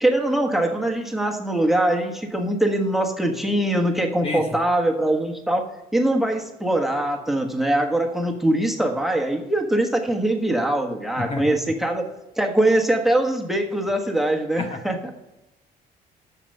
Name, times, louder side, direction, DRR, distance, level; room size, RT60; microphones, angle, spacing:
voice 1, 0.0-12.0 12.4-15.1, right 1 dB, ahead, 2 dB, 1.4 m, -22 dB
voice 2, 11.2-11.6 14.6-14.7, left 3 dB, 35° left, 5 dB, 1.0 m, -29 dB
8.5 x 6.9 x 6.8 m, 0.99 s
cardioid pair, 110°, 17 cm